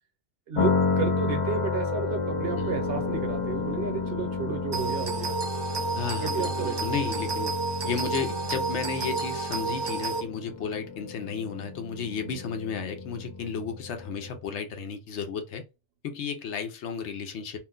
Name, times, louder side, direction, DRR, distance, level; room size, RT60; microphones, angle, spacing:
sound 1, 0.5-14.4, left 4 dB, 55° left, 0.3 m, -31 dB
voice 1, 0.5-5.4 6.2-6.8, right 6 dB, 65° right, 0.9 m, -32 dB
sound 2, 1.9-10.2, right 4 dB, 90° right, 0.9 m, -45 dB
sound 3, 4.7-10.2, right 4 dB, 40° right, 0.3 m, -31 dB
voice 2, 5.9-7.5 7.8-15.6 16.0-17.6, left 6 dB, 80° left, 0.9 m, -33 dB
2.6 x 2.1 x 3.6 m
omnidirectional pair, 1.2 m